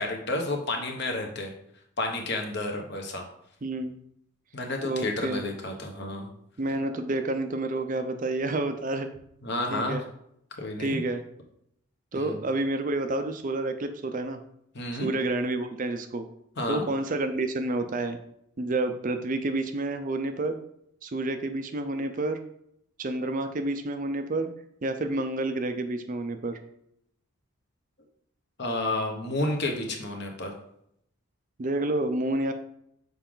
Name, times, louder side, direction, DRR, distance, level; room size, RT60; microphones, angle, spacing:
voice 1, 0.0-1.5 2.0-3.2 4.5-6.3 9.4-10.0 10.6-11.0 12.1-12.3 14.7-15.1 16.6-16.8 28.6-30.5, left 2 dB, 50° left, 3 dB, 1.1 m, -30 dB
voice 2, 3.6-3.9 4.8-5.4 6.6-9.1 9.7-10.0 10.8-11.2 12.1-14.4 14.9-16.3 16.7-18.2 18.6-20.6 21.0-22.4 23.0-24.5 24.8-26.6 31.6-32.5, right 2 dB, 35° right, 7 dB, 0.5 m, -29 dB
6.8 x 4.8 x 3.8 m, 0.74 s
head